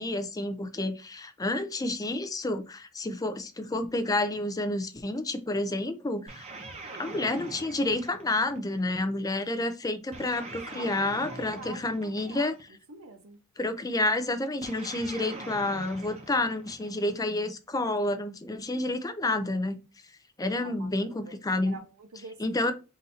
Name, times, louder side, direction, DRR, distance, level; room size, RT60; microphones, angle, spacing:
voice 1, 0.0-6.5 7.0-12.5 13.6-19.8 20.4-21.8 22.4-22.7, left 2 dB, 15° left, 0.4 m, -29 dB
sound 1, 6.3-8.9 10.1-12.7 14.6-17.2, right 2 dB, 30° right, 0.8 m, -43 dB
voice 2, 10.7-12.5 12.9-13.4 20.6-22.7, right 2 dB, 65° right, 0.7 m, -47 dB
3.9 x 2.6 x 4.2 m
head